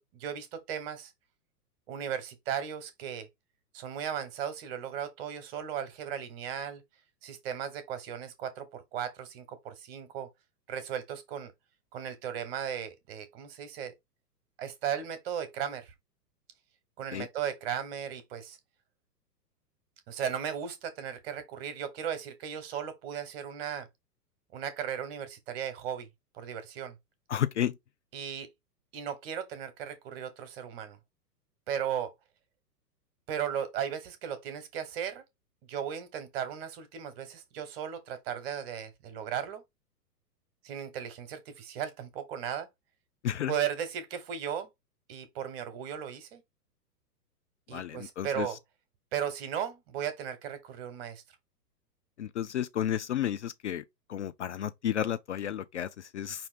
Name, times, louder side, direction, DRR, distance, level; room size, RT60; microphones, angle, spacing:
voice 1, 0.1-1.1 1.9-3.3 3.7-6.8 7.2-10.3 10.7-11.5 11.9-13.9 14.6-15.9 17.0-18.6 20.1-23.9 24.5-26.1 26.3-26.9 28.1-28.5 28.9-31.0 31.7-32.1 33.3-35.2 35.7-39.6 40.6-42.7 43.5-44.7 45.1-46.4 47.7-48.6 49.1-51.2, right 9 dB, 35° right, 1.1 m, -36 dB
voice 2, 27.3-27.8 43.2-43.5 47.7-48.5 52.2-53.8 54.1-56.5, left 10 dB, 45° left, 0.5 m, -32 dB
5.2 x 2.8 x 3.5 m
figure-of-eight pair, 110°, 50 cm